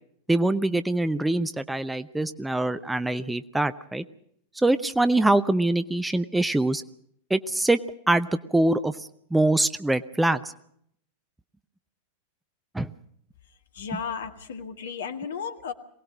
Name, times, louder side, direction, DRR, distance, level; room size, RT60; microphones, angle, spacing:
voice 1, 0.3-4.0 4.6-6.8 7.3-8.9 9.3-10.5 12.7-12.9, right 2 dB, 5° right, 11 dB, 0.7 m, -24 dB
voice 2, 13.4-15.7, left 6 dB, 60° left, 8 dB, 1.9 m, -35 dB
23.0 x 18.5 x 6.2 m, 0.69 s
figure-of-eight pair, 90°, 0 cm